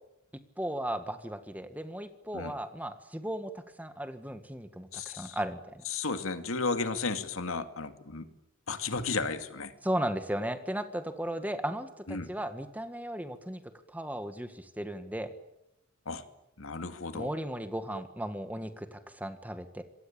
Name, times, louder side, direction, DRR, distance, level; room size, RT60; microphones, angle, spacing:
voice 1, 0.6-5.9 9.8-13.6 13.9-15.3 17.1-19.8, right 1 dB, 10° right, 9 dB, 1.7 m, -36 dB
voice 2, 4.9-5.4 5.9-8.3 8.7-9.7 12.1-12.3 16.1-16.2 16.6-17.3, left 4 dB, 80° left, 8 dB, 2.4 m, -33 dB
27.0 x 23.5 x 8.9 m, 0.86 s
head